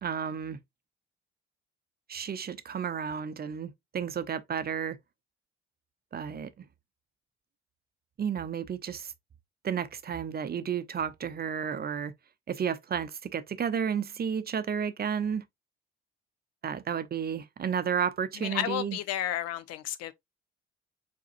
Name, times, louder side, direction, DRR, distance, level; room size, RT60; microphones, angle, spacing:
voice 1, 0.0-0.6 2.1-5.0 6.1-6.5 8.2-9.1 9.6-12.1 12.5-15.4 16.6-19.0, right 7 dB, 30° right, 0.7 m, -32 dB
voice 2, 18.4-20.1, left 12 dB, 55° left, 0.7 m, -32 dB
4.8 x 4.3 x 2.5 m
figure-of-eight pair, 45°, 31 cm